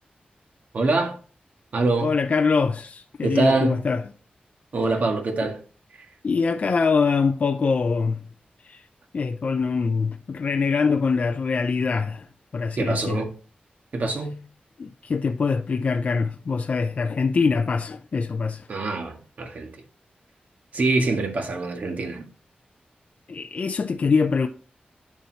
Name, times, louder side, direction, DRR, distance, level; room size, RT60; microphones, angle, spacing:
voice 1, 0.7-1.2 1.7-2.1 3.2-3.8 4.7-5.6 12.8-13.3 13.9-14.4 18.7-19.7 20.7-22.3, right 3 dB, 60° right, 1.7 m, -24 dB
voice 2, 2.0-4.0 6.2-8.3 8.6-8.9 9.1-12.3 12.5-13.2 14.8-18.7 23.3-24.5, left 5 dB, 50° left, 0.5 m, -23 dB
9.5 x 7.0 x 2.8 m
wide cardioid pair, 175°, 3 cm